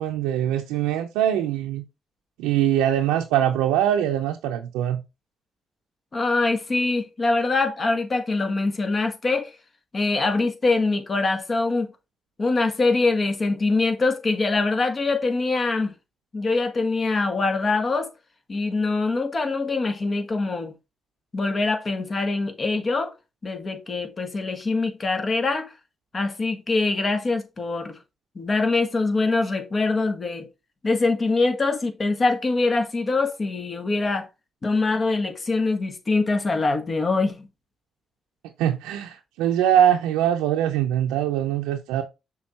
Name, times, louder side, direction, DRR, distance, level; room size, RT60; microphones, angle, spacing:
voice 1, 0.0-1.8 2.4-5.0 38.6-42.0, right 11 dB, 85° right, 0.5 m, -22 dB
voice 2, 6.1-9.5 9.9-11.9 12.4-15.9 16.3-18.1 18.5-20.7 21.3-23.1 23.4-25.7 26.1-28.0 28.3-30.5 30.8-34.3 34.6-37.5, left 3 dB, 45° left, 1.6 m, -23 dB
6.3 x 3.6 x 4.2 m
hypercardioid pair, 45°, 0 cm